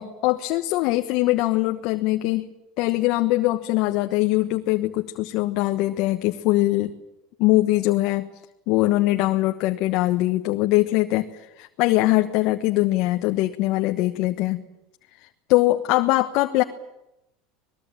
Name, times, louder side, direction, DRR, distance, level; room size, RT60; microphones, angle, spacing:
voice 1, 0.0-2.5 2.8-6.9 7.4-8.3 8.7-14.6 15.5-16.6, left 18 dB, 60° left, 6 dB, 1.2 m, -22 dB
25.5 x 20.5 x 9.0 m, 0.91 s
supercardioid pair, 115°, 0 cm